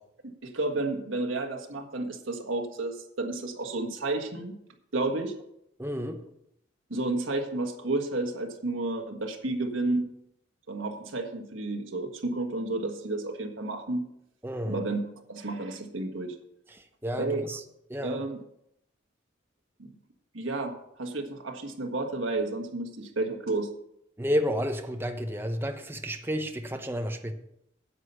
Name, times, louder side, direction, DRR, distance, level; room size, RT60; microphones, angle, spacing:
voice 1, 0.4-4.6 4.9-5.3 6.9-10.1 10.7-14.1 14.6-15.0 15.3-16.3 17.2-17.4 18.0-18.4 19.8-19.9 20.3-23.7, right 2 dB, 80° right, 1.6 m, -31 dB
voice 2, 5.8-6.2 14.4-14.8 16.7-17.6 17.9-18.2 24.2-27.3, equal, 10° right, 0.8 m, -31 dB
9.8 x 8.3 x 5.6 m
head